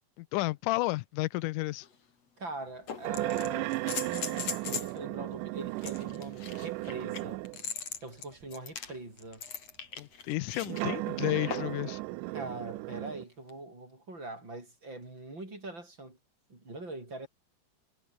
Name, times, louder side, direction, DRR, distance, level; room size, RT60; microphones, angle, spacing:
voice 1, 0.2-1.9 10.0-12.0, left 20 dB, 90° left, 2.2 m, -32 dB
sound 1, 1.8-1.9 2.9-5.0 5.8-10.8 11.5-11.9 13.5-13.6, left 6 dB, 55° left, 4.0 m, -39 dB
voice 2, 2.4-7.4 8.0-9.4 12.3-16.2 16.5-17.3, right 2 dB, 35° right, 8.5 m, -43 dB
sound 2, 3.0-7.7 8.4-8.5 10.6-13.2, right 19 dB, 85° right, 2.2 m, -35 dB
omnidirectional pair, 3.6 m